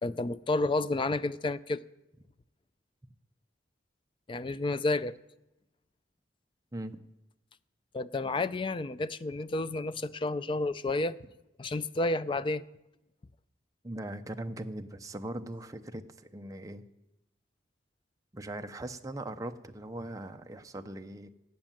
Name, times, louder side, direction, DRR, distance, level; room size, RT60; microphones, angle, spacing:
voice 1, 0.0-1.8 4.3-5.1 7.9-11.2 11.6-12.6, left 2 dB, 25° left, 0.4 m, -30 dB
voice 2, 13.8-16.0 16.3-16.8 18.3-21.3, right 1 dB, 20° right, 0.6 m, -40 dB
14.5 x 5.4 x 9.0 m
head